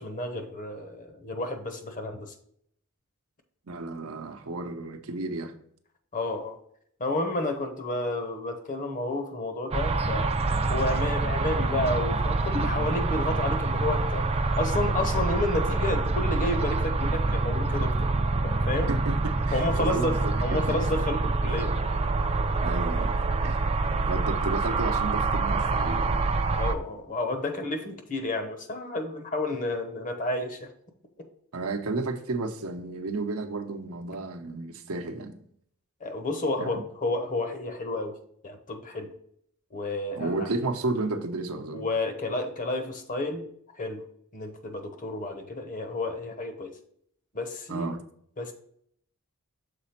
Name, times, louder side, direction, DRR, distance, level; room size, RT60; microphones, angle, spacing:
voice 1, 0.0-2.3 6.1-6.6 7.0-10.3 10.7-14.3 14.6-18.1 18.4-18.9 19.5-21.8 26.5-30.7 36.0-38.2 38.4-39.1 39.7-40.5 41.7-43.4 43.8-44.0 44.3-46.7 47.3-47.9 48.4-48.5, left 2 dB, 35° left, 0.9 m, -31 dB
voice 2, 3.7-5.6 18.9-20.4 20.7-20.8 22.6-23.2 23.4-23.7 24.1-26.3 31.5-35.4 36.6-36.8 40.1-41.9 47.7-48.0, right 3 dB, 70° right, 0.8 m, -32 dB
sound 1, 9.7-26.7, right 3 dB, 25° right, 0.4 m, -26 dB
6.8 x 4.1 x 4.3 m
head